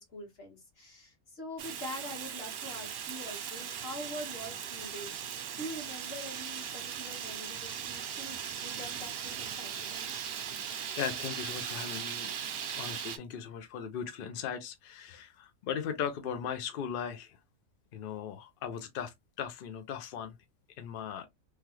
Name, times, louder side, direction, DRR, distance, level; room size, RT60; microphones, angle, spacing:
voice 1, 0.0-10.2, left 1 dB, 45° left, 1.5 m, -44 dB
Fire, 1.6-13.2, right 8 dB, 65° right, 0.6 m, -39 dB
voice 2, 10.6-12.3 12.7-17.4 17.9-20.3 20.8-21.3, left 8 dB, 70° left, 0.5 m, -38 dB
3.2 x 2.3 x 2.9 m
omnidirectional pair, 1.5 m